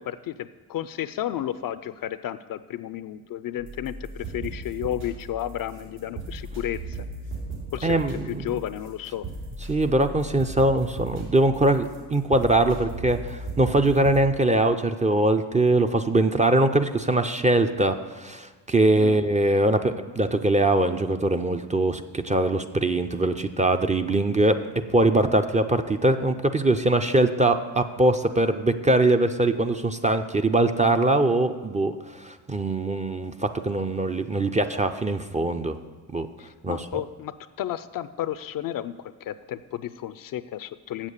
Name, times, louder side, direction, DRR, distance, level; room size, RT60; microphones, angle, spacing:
voice 1, 0.0-7.0 7.7-9.3 19.0-19.2 36.4-41.1, left 12 dB, 45° left, 14 dB, 0.5 m, -32 dB
sound 1, 3.6-14.2, right 2 dB, 85° right, 3.5 m, -37 dB
voice 2, 7.8-8.4 9.7-24.6 24.9-35.8 36.1-36.3 36.6-36.8, right 2 dB, 15° right, 7 dB, 0.5 m, -22 dB
7.7 x 7.4 x 6.6 m, 1.4 s
hypercardioid pair, 60°, 47 cm